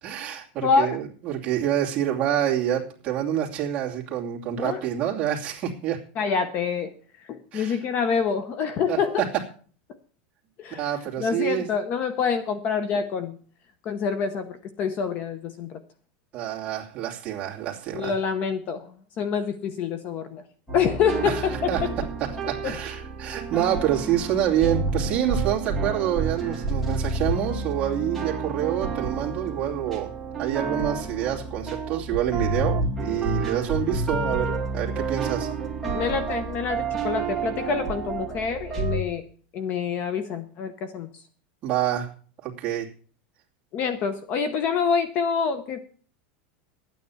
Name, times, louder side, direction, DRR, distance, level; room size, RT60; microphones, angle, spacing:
voice 1, 0.0-6.0 7.5-7.8 8.9-9.3 10.7-11.7 16.3-18.2 21.2-21.4 21.7-21.8 22.2-30.1 30.4-35.5 41.6-42.1 42.4-42.9, right 11 dB, 20° right, -3 dB, 2.6 m, -27 dB
voice 2, 0.6-1.0 4.6-4.8 6.2-6.9 7.2-9.2 10.6-10.8 11.2-13.4 13.8-15.8 17.9-20.4 20.7-21.9 22.6-22.8 35.9-39.2 39.5-41.2 43.7-45.8, left 6 dB, 30° left, 12 dB, 0.8 m, -26 dB
sound 1, 20.7-39.0, right 3 dB, 5° left, 2.3 m, -29 dB
12.5 x 9.4 x 7.1 m, 0.43 s
supercardioid pair, 180°, 6 cm